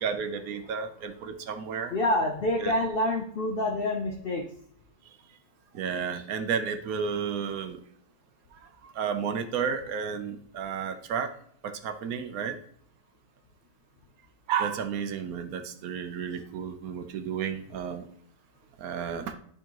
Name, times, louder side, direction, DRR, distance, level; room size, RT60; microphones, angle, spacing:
voice 1, 0.0-1.9 2.6-2.7 5.7-7.8 8.8-11.3 11.6-12.6 14.5-18.0 18.8-19.3, right 7 dB, 75° right, 7 dB, 1.1 m, -32 dB
voice 2, 1.9-4.5, left 1 dB, 55° left, 2 dB, 0.6 m, -27 dB
10.5 x 3.7 x 2.9 m, 0.64 s
omnidirectional pair, 1.6 m